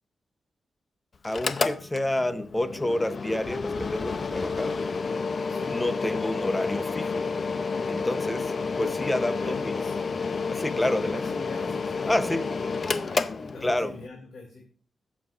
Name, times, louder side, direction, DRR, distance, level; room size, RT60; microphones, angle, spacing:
Mechanical fan, 1.2-14.1, left 4 dB, 40° left, 0.6 m, -30 dB
voice 1, 1.2-4.8 5.7-7.2 7.8-9.7 10.5-11.2 12.1-12.5 13.6-13.9, left 1 dB, 10° left, 0.8 m, -29 dB
voice 2, 9.3-9.9 10.9-12.4 12.7-14.8, left 2 dB, 65° left, 2.5 m, -43 dB
21.5 x 7.4 x 2.5 m
wide cardioid pair, 135°, 0 cm